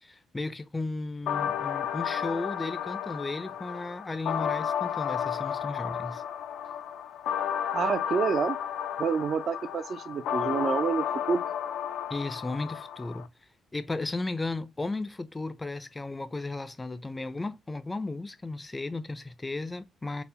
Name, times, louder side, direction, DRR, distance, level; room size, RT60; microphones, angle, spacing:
voice 1, 0.0-6.2 12.1-13.3 13.7-20.2, left 2 dB, 20° left, 0.5 m, -35 dB
sound 1, 1.3-13.3, left 9 dB, 80° left, 0.4 m, -32 dB
voice 2, 7.7-8.6 9.0-11.5, right 6 dB, 55° right, 0.5 m, -28 dB
4.2 x 2.1 x 3.3 m
cardioid pair, 90°, 0 cm